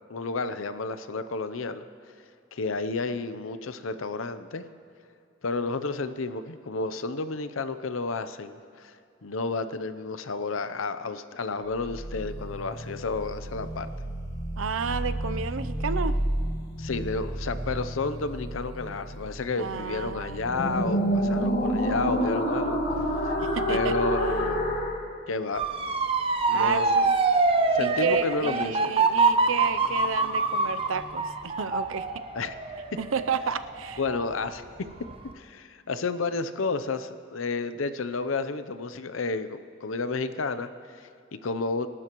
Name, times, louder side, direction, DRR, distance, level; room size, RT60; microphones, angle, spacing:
voice 1, 0.1-1.8 2.5-4.6 5.4-9.0 9.2-13.9 16.8-22.8 23.2-23.4 23.7-24.8 25.3-25.6 26.5-27.1 27.7-28.9 32.3-32.5 34.0-34.6 35.3-41.9, left 3 dB, 85° left, 12 dB, 0.7 m, -31 dB
sound 1, 11.8-25.0, equal, 55° left, 2.1 m, -29 dB
voice 2, 14.6-16.2 19.6-20.4 23.4-24.0 26.5-27.0 27.8-32.1 33.0-34.0, right 6 dB, 85° right, 12 dB, 0.6 m, -31 dB
Motor vehicle (road) / Siren, 25.5-34.5 34.9-35.3, right 3 dB, 30° right, 0.7 m, -25 dB
26.5 x 12.5 x 3.1 m, 2.5 s
head